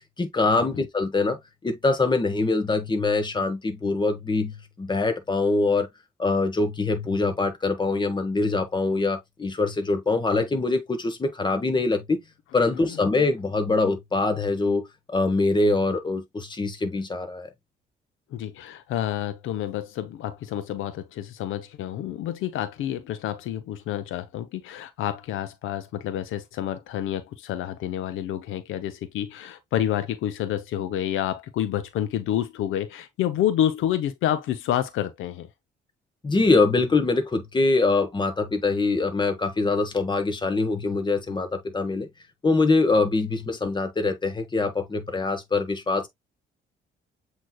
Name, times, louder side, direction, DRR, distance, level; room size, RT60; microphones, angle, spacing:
voice 1, 0.2-5.9 6.2-12.2 12.5-17.5 36.2-42.1 42.4-46.1, left 3 dB, 25° left, 1.2 m, -24 dB
voice 2, 12.7-13.0 18.3-35.5, left 11 dB, 85° left, 0.7 m, -29 dB
7.6 x 3.0 x 2.2 m
cardioid pair, 90°, 20 cm